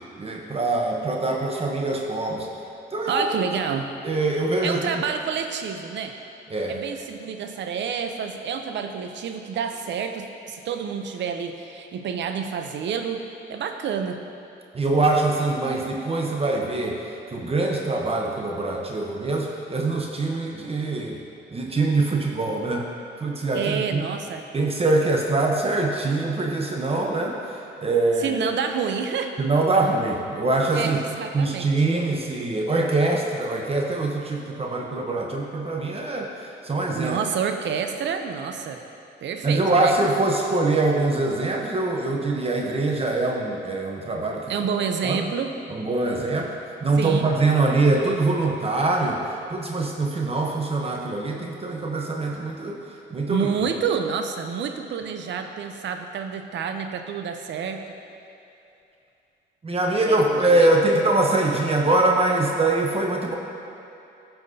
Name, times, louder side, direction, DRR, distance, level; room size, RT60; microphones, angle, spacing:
voice 1, 0.2-2.5 2.9-3.2 4.0-5.0 6.5-6.8 14.7-21.2 21.5-22.9 23.2-24.0 24.5-28.4 29.4-31.0 31.3-37.2 39.4-44.5 45.0-45.3 45.7-46.5 46.8-52.8 53.1-53.5 59.6-63.4, right 2 dB, 30° right, 0 dB, 0.9 m, -23 dB
voice 2, 3.1-3.9 4.6-6.2 6.7-13.2 13.5-14.2 23.5-24.4 28.2-29.3 30.7-31.7 37.0-38.8 39.2-40.0 44.5-45.5 47.0-47.3 53.3-57.8 60.1-60.7, right 6 dB, 65° right, 6 dB, 0.7 m, -28 dB
15.5 x 5.9 x 2.8 m, 2.7 s
cardioid pair, 90°, 20 cm